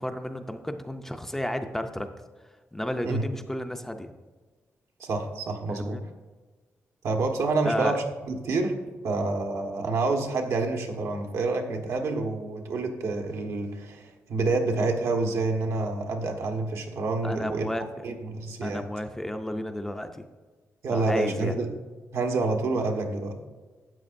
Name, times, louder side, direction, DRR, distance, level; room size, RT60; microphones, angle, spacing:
voice 1, 0.0-2.1 2.7-4.1 5.7-6.0 7.6-8.0 17.2-17.8 18.6-20.2 20.9-21.5, left 1 dB, 5° left, 6 dB, 0.5 m, -32 dB
voice 2, 5.0-6.0 7.0-8.8 9.0-17.7 18.0-18.8 20.8-21.7 22.1-23.3, right 3 dB, 75° right, 3 dB, 1.3 m, -28 dB
12.5 x 8.8 x 2.6 m, 1.4 s
wide cardioid pair, 165°, 5 cm